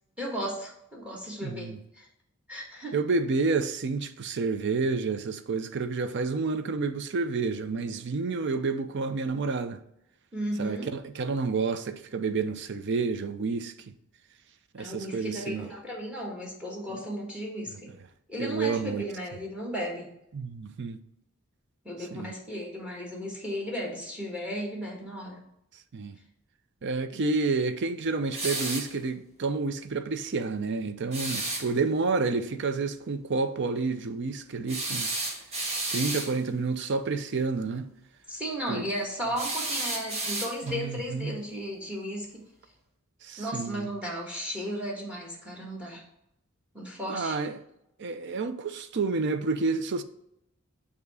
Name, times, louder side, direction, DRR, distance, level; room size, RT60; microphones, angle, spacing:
voice 1, 0.2-2.1 2.5-2.9 10.3-10.9 14.8-17.9 18.3-20.1 21.8-25.4 27.1-27.2 38.3-42.4 43.4-46.0 46.7-47.4, equal, 5° right, 1.4 m, -35 dB
voice 2, 1.4-1.8 2.9-9.8 10.6-13.9 14.7-15.7 16.9-17.0 18.4-19.0 20.3-21.0 22.1-22.3 25.9-26.2 26.8-35.3 35.9-37.9 38.7-38.8 40.6-41.4 43.2-43.9 47.1-47.6 48.0-50.0, right 4 dB, 55° right, 0.5 m, -29 dB
sound 1, 28.3-28.9 31.1-31.7 34.7-36.3 39.4-40.8, right 2 dB, 30° right, 1.4 m, -32 dB
7.0 x 2.8 x 4.8 m
head